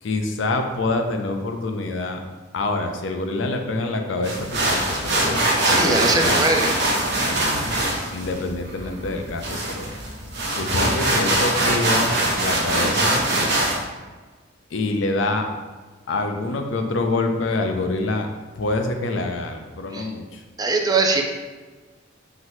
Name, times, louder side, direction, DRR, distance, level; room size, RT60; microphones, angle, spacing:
voice 1, 0.0-2.2 2.5-6.5 7.3-7.8 8.1-9.9 10.5-13.2 14.7-15.5 16.1-18.3 18.6-20.4, left 2 dB, 75° left, 5 dB, 0.5 m, -26 dB
sound 1, 4.2-13.8, right 1 dB, 65° right, 0.8 m, -23 dB
voice 2, 5.7-6.7 19.9-20.1 20.6-21.2, right 3 dB, 20° right, 2 dB, 0.4 m, -21 dB
5.8 x 2.9 x 2.6 m, 1.3 s
head